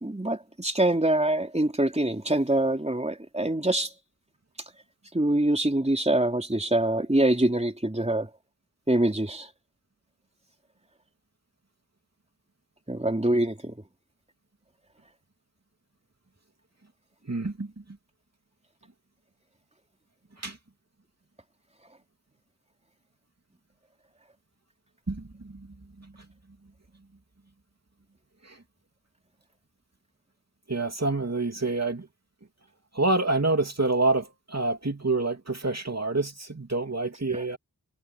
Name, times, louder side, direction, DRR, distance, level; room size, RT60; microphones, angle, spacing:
voice 1, 0.0-3.9 5.1-8.3 8.9-9.5 12.9-13.7, right 1 dB, 20° right, 3.5 m, -24 dB
voice 2, 17.2-17.7 20.4-20.6 25.1-25.7 26.0-26.1 28.4-28.6 30.7-32.1 32.9-37.6, right 2 dB, 45° right, 2.9 m, -27 dB
wide cardioid pair, 55°, 36 cm